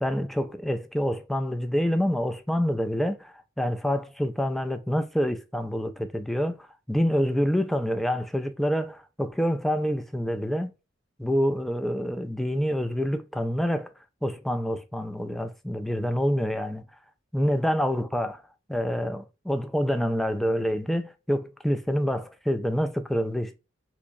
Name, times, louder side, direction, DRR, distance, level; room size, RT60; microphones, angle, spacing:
voice 1, 0.0-10.7 11.2-13.9 14.2-16.8 17.3-18.4 18.7-23.6, equal, ahead, 0.4 m, -27 dB
3.6 x 3.0 x 2.5 m
head